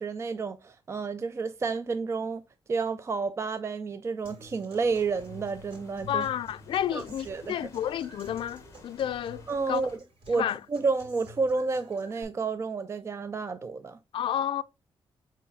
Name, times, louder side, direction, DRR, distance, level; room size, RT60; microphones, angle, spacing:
voice 1, 0.0-2.4 2.7-6.3 6.9-7.5 9.5-9.9 10.3-14.0, right 4 dB, 30° right, 0.4 m, -30 dB
Human voice / Acoustic guitar, 4.2-12.2, right 1 dB, 80° right, 3.9 m, -49 dB
sound 1, 4.8-10.0, left 4 dB, 35° left, 1.3 m, -54 dB
voice 2, 6.1-9.8 10.3-10.6 14.1-14.6, left 10 dB, 70° left, 0.4 m, -31 dB
6.9 x 4.6 x 3.4 m
wide cardioid pair, 150°, 9 cm